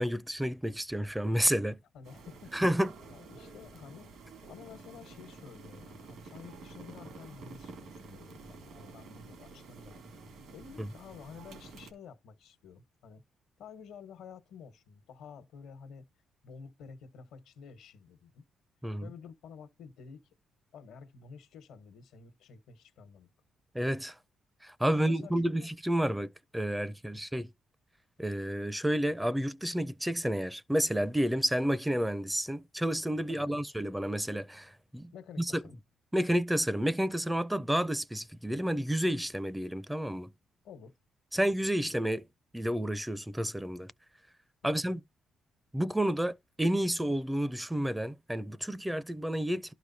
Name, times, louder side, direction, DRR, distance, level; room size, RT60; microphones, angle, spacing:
voice 1, 0.0-1.8 2.5-2.9 18.8-19.1 23.7-24.2 24.6-27.5 28.2-35.1 35.4-35.6 36.1-40.3 41.3-42.3 42.5-43.9 44.6-45.0 45.7-49.7, equal, 5° right, 0.4 m, -30 dB
voice 2, 1.9-2.6 3.1-4.1 4.5-10.0 10.5-13.2 13.6-16.0 16.4-18.4 19.0-20.2 20.7-23.3 24.9-25.7 33.3-33.6 35.1-35.8 40.6-40.9 44.6-45.0, left 6 dB, 85° left, 1.1 m, -51 dB
sound 1, 2.0-11.9, right 3 dB, 80° right, 2.2 m, -50 dB
11.5 x 4.8 x 2.7 m
cardioid pair, 90°, 0 cm